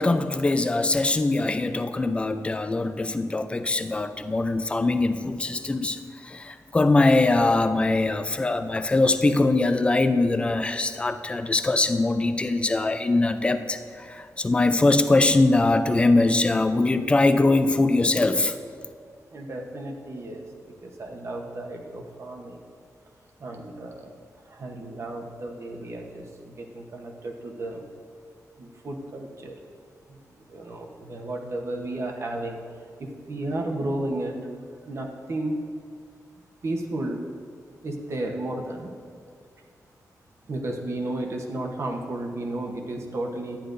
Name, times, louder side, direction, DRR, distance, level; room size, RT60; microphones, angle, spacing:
voice 1, 0.0-6.0 6.2-13.8 14.1-18.5, left 2 dB, 15° left, 9 dB, 0.4 m, -22 dB
voice 2, 19.3-20.4 20.8-22.6 23.4-24.1 24.5-27.8 28.6-29.6 30.1-30.2 30.5-32.6 33.0-34.4 34.9-35.6 36.6-37.2 37.8-38.9 40.5-43.6, right 1 dB, 45° right, 2 dB, 0.9 m, -33 dB
11.5 x 9.6 x 2.6 m, 2.2 s
wide cardioid pair, 175°, 6 cm